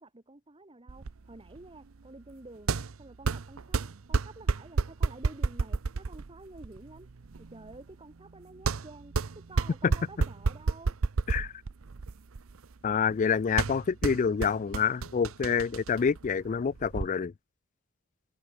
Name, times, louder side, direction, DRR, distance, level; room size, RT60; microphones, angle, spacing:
voice 1, 0.0-2.7 3.0-3.8 4.1-7.1 7.4-11.0, right 2 dB, 25° right, 1.3 m, -50 dB
sound 1, 0.9-17.1, right 4 dB, 80° right, 0.7 m, -32 dB
voice 2, 12.8-17.3, left 6 dB, 35° left, 0.3 m, -27 dB
head